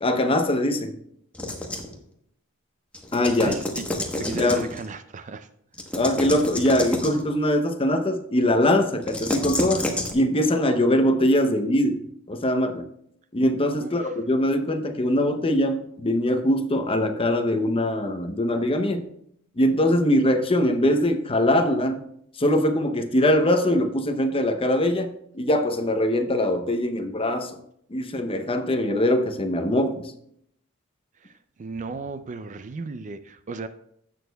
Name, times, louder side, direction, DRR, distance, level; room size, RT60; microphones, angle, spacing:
voice 1, 0.0-1.0 3.1-3.6 4.3-4.7 5.9-12.9 13.3-19.1 19.6-22.0 22.4-27.6 27.9-30.1, left 1 dB, 25° left, 7 dB, 0.7 m, -22 dB
sound 1, 1.3-2.0 2.9-4.9 5.7-7.2 9.0-10.1, left 1 dB, 5° left, 1.0 m, -29 dB
voice 2, 3.4-3.9 4.2-5.5 13.8-14.2 31.2-33.7, right 4 dB, 35° right, 11 dB, 0.4 m, -35 dB
16.0 x 6.3 x 2.3 m, 0.72 s
head